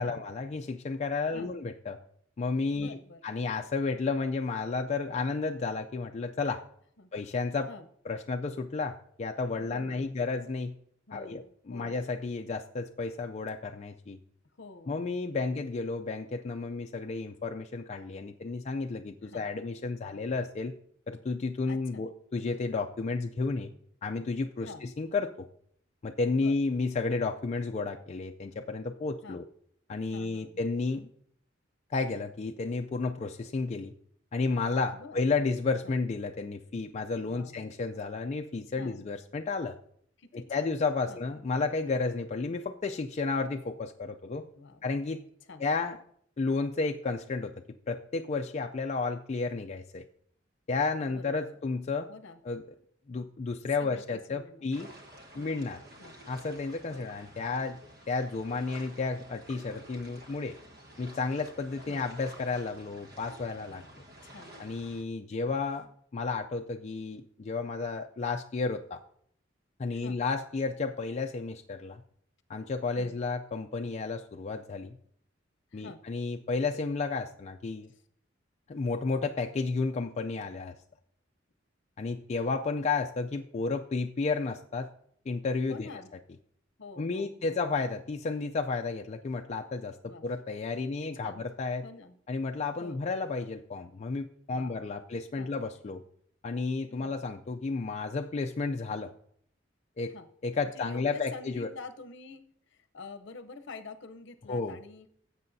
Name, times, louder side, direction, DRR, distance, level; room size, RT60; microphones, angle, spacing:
voice 1, 0.0-2.0 2.4-3.0 3.2-6.6 7.1-7.7 8.1-10.7 11.1-14.2 14.9-20.7 21.1-23.7 24.0-25.3 26.0-29.4 29.9-31.1 31.9-33.9 34.3-39.8 40.3-44.5 44.8-45.2 45.6-46.0 46.4-47.5 47.9-50.0 50.7-52.1 52.5-52.6 53.1-54.9 55.3-55.8 56.3-57.8 58.1-60.6 61.0-64.0 64.6-69.0 69.8-72.0 72.5-75.0 75.7-77.9 78.7-80.7 82.0-84.9 85.3-85.9 87.0-91.8 92.3-96.0 96.4-99.1 100.0-100.1 100.4-101.7 104.5-104.8, left 4 dB, 35° left, 3 dB, 0.4 m, -32 dB
voice 2, 2.7-3.2 7.0-7.1 7.7-7.9 9.6-10.1 11.1-12.0 14.6-15.0 15.4-15.6 19.2-19.5 20.1-20.2 21.6-22.0 23.1-23.2 24.6-24.9 26.4-26.6 29.2-29.4 30.1-30.7 34.9-35.2 35.8-36.0 37.3-37.7 38.7-39.1 40.2-40.7 41.1-41.2 44.6-45.0 45.5-45.7 51.0-51.6 52.1-52.4 53.8-54.7 55.4-55.7 56.0-56.2 56.9-57.1 61.9-62.0 63.6-63.9 64.2-64.5 69.9-70.2 73.0-73.1 75.7-76.0 77.9-78.0 85.7-86.1 86.8-87.7 90.0-90.3 91.0-91.5 91.8-92.2 92.8-93.0 94.5-95.0 95.4-95.5 96.9-97.1 100.1-100.3 100.7-105.1, left 3 dB, 65° left, 9 dB, 0.7 m, -47 dB
sound 1, 54.7-65.0, right 1 dB, 55° right, 1.4 m, -51 dB
16.5 x 7.6 x 2.7 m, 0.66 s
head